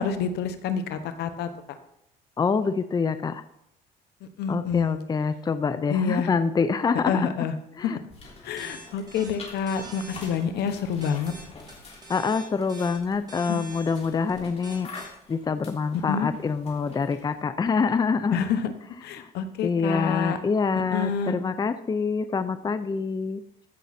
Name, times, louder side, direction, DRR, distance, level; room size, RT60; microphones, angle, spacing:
voice 1, 0.0-1.5 4.4-5.0 5.9-6.3 7.1-7.5 7.8-8.0 8.4-11.3 13.5-13.6 16.1-16.3 18.3-18.7 19.0-20.4 20.9-21.3, left 6 dB, 80° left, 9 dB, 1.2 m, -28 dB
voice 2, 2.4-3.4 4.5-7.4 7.8-8.0 12.1-18.5 19.2-19.3 19.6-23.4, left 5 dB, 25° left, 12 dB, 0.6 m, -26 dB
sound 1, 8.1-17.4, left 3 dB, 40° left, 3.3 m, -47 dB
sound 2, 8.6-15.1, right 2 dB, 20° right, 2.5 m, -44 dB
15.0 x 6.2 x 4.3 m, 0.78 s
cardioid pair, 110°, 17 cm